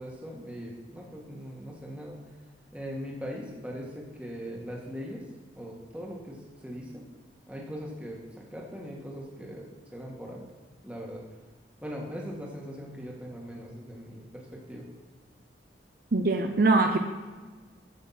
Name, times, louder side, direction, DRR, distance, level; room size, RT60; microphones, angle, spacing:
voice 1, 0.0-2.2 2.7-5.2 5.6-7.0 7.5-10.5 10.8-11.2 11.8-14.9, equal, 5° right, -3 dB, 1.8 m, -40 dB
voice 2, 16.1-17.0, right 3 dB, 50° right, 5 dB, 0.6 m, -22 dB
14.0 x 6.0 x 4.2 m, 1.4 s
head